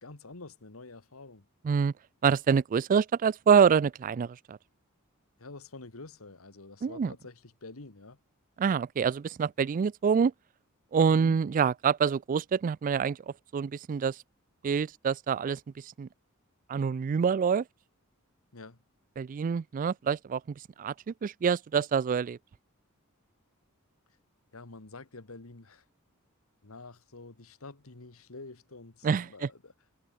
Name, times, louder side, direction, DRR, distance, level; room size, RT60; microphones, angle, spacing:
voice 1, 0.0-1.5 5.4-8.2 11.1-11.4 18.5-18.8 24.5-25.8 26.6-29.7, left 3 dB, 80° left, 1.7 m, -47 dB
voice 2, 2.2-4.6 6.8-7.1 8.6-10.3 10.9-14.2 14.6-16.1 16.7-17.6 19.2-20.4 20.8-22.4 29.0-29.5, right 6 dB, 40° right, 0.3 m, -26 dB
head